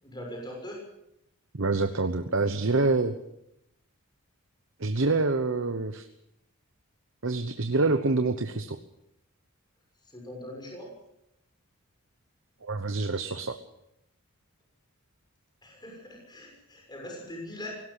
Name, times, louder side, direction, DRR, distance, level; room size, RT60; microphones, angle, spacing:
voice 1, 0.0-0.8 10.0-10.9 15.6-17.7, left 1 dB, 20° left, 0 dB, 6.6 m, -41 dB
voice 2, 1.5-3.2 4.8-6.1 7.2-8.8 12.6-13.6, right 3 dB, 60° right, 8 dB, 1.0 m, -26 dB
18.0 x 17.5 x 8.3 m, 0.83 s
head